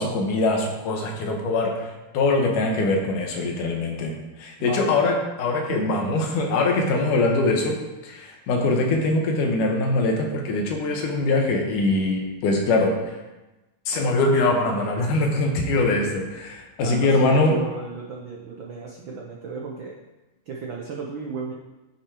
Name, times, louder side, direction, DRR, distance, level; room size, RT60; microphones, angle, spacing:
voice 1, 0.0-1.7 2.1-4.1 4.4-7.8 8.0-12.9 13.9-17.5, left 2 dB, 75° left, 2 dB, 2.8 m, -22 dB
voice 2, 4.6-4.9 6.9-7.0 16.8-20.0 20.5-21.5, right 4 dB, 90° right, -1 dB, 1.0 m, -33 dB
9.9 x 6.1 x 4.9 m, 1.1 s
omnidirectional pair, 3.7 m